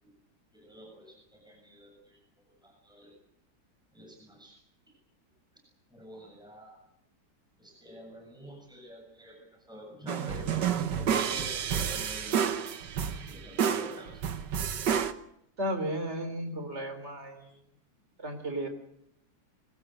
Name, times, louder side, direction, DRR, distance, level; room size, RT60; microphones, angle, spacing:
voice 1, 0.5-2.2 2.6-3.1 3.9-4.6 5.9-6.8 7.6-12.5 13.3-14.2, equal, ahead, 1 dB, 7.2 m, -48 dB
sound 1, 10.1-15.1, right 8 dB, 85° right, 1.8 m, -30 dB
voice 2, 15.6-17.6 18.2-18.7, right 1 dB, 40° right, 7 dB, 3.9 m, -34 dB
25.0 x 22.5 x 7.8 m, 0.77 s
omnidirectional pair, 1.8 m